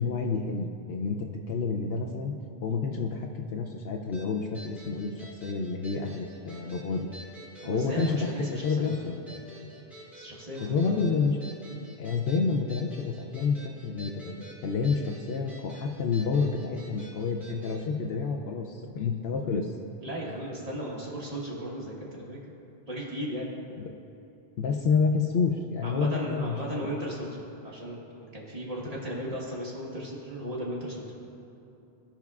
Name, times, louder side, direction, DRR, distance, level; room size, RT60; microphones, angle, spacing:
voice 1, 0.0-2.3 2.6-7.1 7.7-8.2 8.5-9.1 10.6-11.4 12.0-19.7 23.8-23.9 24.6-26.9, left 5 dB, 70° left, 2 dB, 0.8 m, -29 dB
sound 1, 4.1-17.8, equal, ahead, 1.9 m, -49 dB
voice 2, 7.6-9.0 10.1-11.1 20.0-22.4 22.9-23.5 25.8-31.1, equal, 35° right, -5 dB, 1.4 m, -36 dB
15.5 x 5.8 x 2.3 m, 2.9 s
omnidirectional pair, 1.1 m